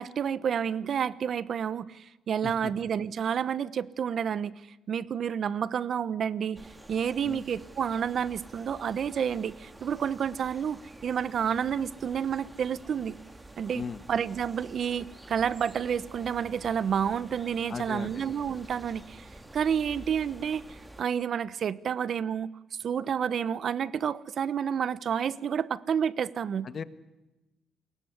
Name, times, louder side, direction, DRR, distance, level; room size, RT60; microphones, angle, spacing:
voice 1, 0.0-4.5 4.9-6.6 6.9-13.2 13.6-13.8 14.1-20.6 21.0-22.5 22.8-26.7, right 8 dB, 60° right, 1.1 m, -30 dB
sound 1, 6.5-21.0, right 1 dB, 15° right, 2.4 m, -49 dB
voice 2, 17.7-18.2 26.6-26.8, left 6 dB, 45° left, 1.7 m, -37 dB
29.5 x 21.5 x 8.2 m
cardioid pair, 90°, 0 cm